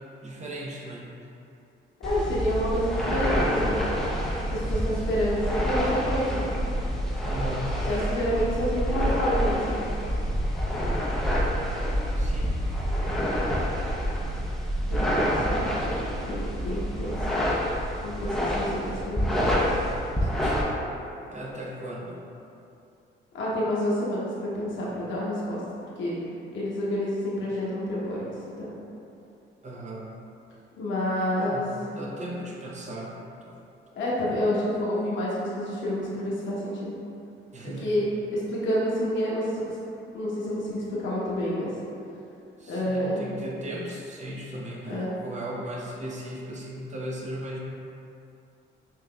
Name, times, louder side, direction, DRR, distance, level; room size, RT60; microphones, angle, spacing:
voice 1, 0.2-1.1 7.2-7.9 12.2-12.5 20.4-20.7 21.3-22.2 29.6-30.1 31.3-33.2 33.4-33.6 37.5-37.9 42.6-47.6, right 1 dB, 35° right, -3 dB, 0.7 m, -37 dB
voice 2, 2.0-3.8 4.5-6.5 7.9-9.8 14.9-17.2 18.0-19.5 20.2-20.3 23.3-25.6 26.0-26.2 26.5-28.3 28.6-28.8 30.8-31.6 34.0-36.9 37.8-38.0 38.3-39.7 40.1-41.7 42.7-43.3 44.9-45.1, equal, 70° left, -7 dB, 0.9 m, -28 dB
sound 1, 2.0-20.6, equal, ahead, 0.6 m, -27 dB
5.6 x 2.8 x 2.3 m, 2.7 s
cardioid pair, 90°, 20 cm